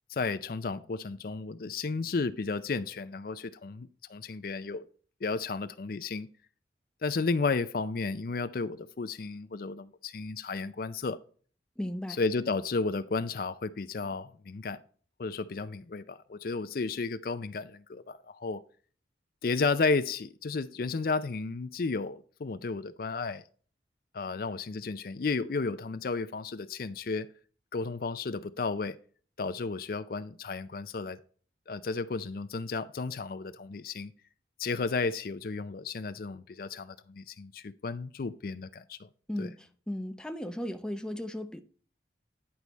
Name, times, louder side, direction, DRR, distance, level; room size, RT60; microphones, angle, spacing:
voice 1, 0.1-4.8 5.2-6.3 7.0-11.2 12.2-14.8 15.2-18.6 19.4-23.4 24.1-27.3 27.7-29.0 29.4-31.2 31.7-34.1 34.6-39.1 39.4-39.5, left 4 dB, 55° left, 0.5 m, -33 dB
voice 2, 11.8-12.2 39.3-41.6, left 1 dB, 5° left, 0.6 m, -36 dB
10.0 x 4.7 x 4.0 m
head